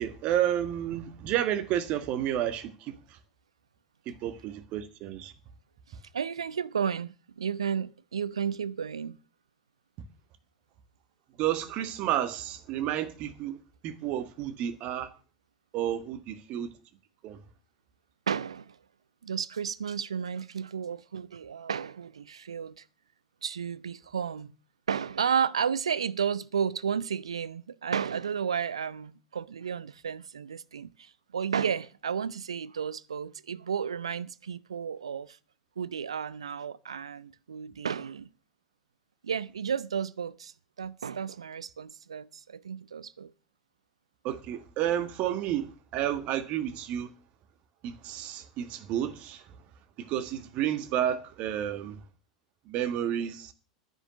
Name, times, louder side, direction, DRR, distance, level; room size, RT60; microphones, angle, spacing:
voice 1, 0.0-3.2 4.0-5.3 11.4-13.6 13.8-15.1 15.7-16.7 17.2-17.4 44.2-47.1 47.8-49.5 50.0-52.0 52.7-53.5, right 11 dB, 45° right, 1.7 m, -31 dB
voice 2, 5.9-9.2 18.3-18.8 19.2-22.8 23.4-24.5 24.9-35.4 35.8-38.3 39.2-43.3, right 7 dB, 80° right, 0.6 m, -32 dB
11.5 x 10.5 x 6.3 m
figure-of-eight pair, 85°, 3 cm